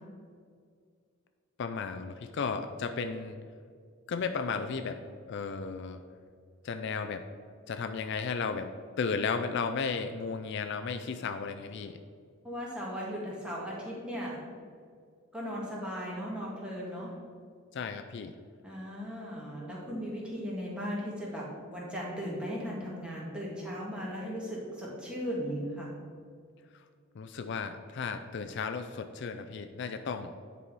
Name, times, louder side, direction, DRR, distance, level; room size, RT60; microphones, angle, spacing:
voice 1, 1.6-3.4 4.1-5.0 5.3-6.0 6.6-7.2 7.7-8.7 9.0-12.0 17.7-18.3 27.2-30.3, left 5 dB, 55° left, 8 dB, 0.4 m, -34 dB
voice 2, 12.4-14.4 15.3-17.2 18.6-25.9, equal, 5° right, -5 dB, 1.7 m, -37 dB
9.9 x 4.1 x 4.6 m, 2.1 s
head